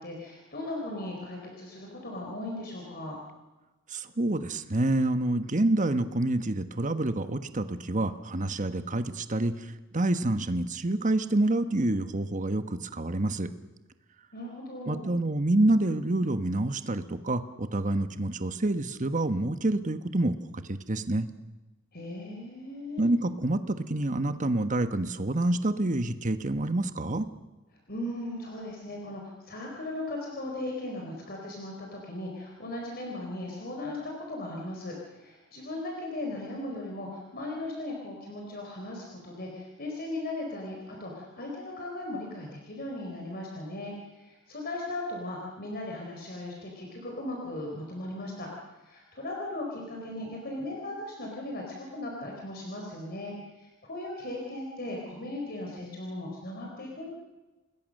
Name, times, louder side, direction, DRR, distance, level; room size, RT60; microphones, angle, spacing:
voice 1, 0.0-3.2 14.3-15.1 21.9-23.1 27.9-48.5 48.8-57.1, left 1 dB, 50° left, -1 dB, 4.5 m, -37 dB
voice 2, 3.9-9.7 9.9-13.5 14.9-21.3 23.0-27.3, right 2 dB, 40° right, 10 dB, 1.3 m, -27 dB
28.5 x 20.5 x 6.6 m, 1.1 s
head